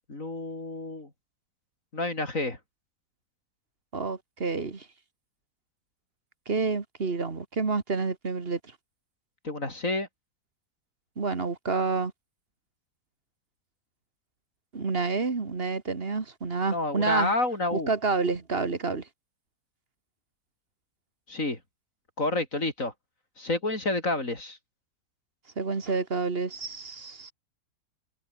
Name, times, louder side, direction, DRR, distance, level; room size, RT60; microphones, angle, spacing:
voice 1, 0.1-1.1 1.9-2.6 9.4-10.1 16.7-17.9 21.3-21.6 22.2-22.9 23.4-24.6, left 2 dB, 45° left, 5.1 m, -29 dB
voice 2, 3.9-4.9 6.5-8.6 11.2-12.1 14.7-17.3 17.7-19.1 25.6-27.3, right 4 dB, 35° right, 2.0 m, -29 dB
omnidirectional pair, 1.9 m